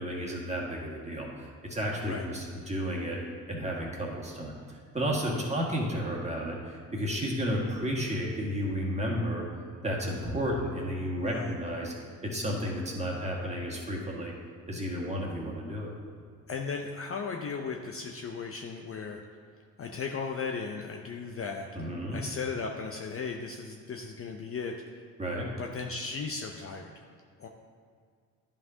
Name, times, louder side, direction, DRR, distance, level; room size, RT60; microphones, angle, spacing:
voice 1, 0.0-3.2 3.5-9.4 9.8-11.9 12.2-14.3 14.7-15.9 21.8-22.2 25.2-25.5, equal, 15° right, -2 dB, 1.8 m, -32 dB
voice 2, 1.9-2.2 5.3-5.4 11.2-11.5 16.5-19.2 19.8-24.7 25.6-26.9 27.4-27.5, left 5 dB, 35° left, 2 dB, 0.6 m, -36 dB
11.0 x 5.3 x 2.8 m, 2.1 s
hypercardioid pair, 60°, 42 cm